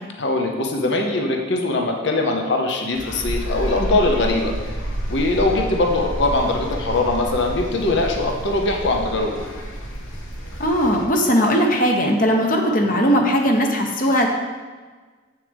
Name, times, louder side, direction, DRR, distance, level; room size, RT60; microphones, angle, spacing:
voice 1, 0.2-4.5 5.1-9.5, left 2 dB, 65° left, 2 dB, 0.8 m, -21 dB
sound 1, 2.9-11.1, left 1 dB, 90° left, 1.2 m, -36 dB
sound 2, 3.2-10.7, right 1 dB, 25° right, 0.4 m, -30 dB
voice 2, 10.6-14.3, equal, 45° left, 2 dB, 1.0 m, -18 dB
8.0 x 6.8 x 3.5 m, 1.4 s
head